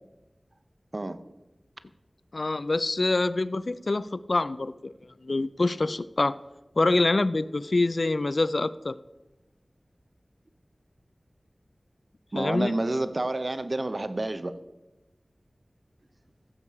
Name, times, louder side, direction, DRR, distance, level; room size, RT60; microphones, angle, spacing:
voice 1, 2.3-4.9 5.2-6.4 6.8-9.0 12.3-12.8, left 2 dB, 65° left, 17 dB, 0.4 m, -25 dB
voice 2, 12.3-14.5, right 2 dB, 50° right, 11 dB, 0.7 m, -29 dB
15.0 x 7.3 x 4.8 m, 1.0 s
wide cardioid pair, 50°, 0 cm